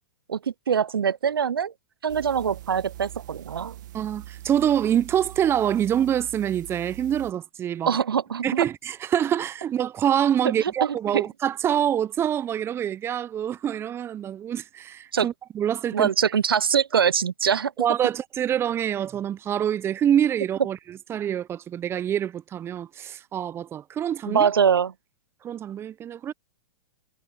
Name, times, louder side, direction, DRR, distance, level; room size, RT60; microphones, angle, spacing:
voice 1, 0.7-1.7 2.0-3.7 7.9-8.6 10.6-10.7 15.1-15.3 15.9-17.7 24.3-24.9, right 7 dB, 70° right, 1.1 m, -23 dB
sound 1, 2.1-7.3, right 14 dB, 55° right, 1.5 m, -42 dB
voice 2, 3.9-7.9 8.4-16.1 17.8-24.5 25.4-26.3, right 10 dB, 20° right, 1.0 m, -26 dB
figure-of-eight pair, 110°, 12 cm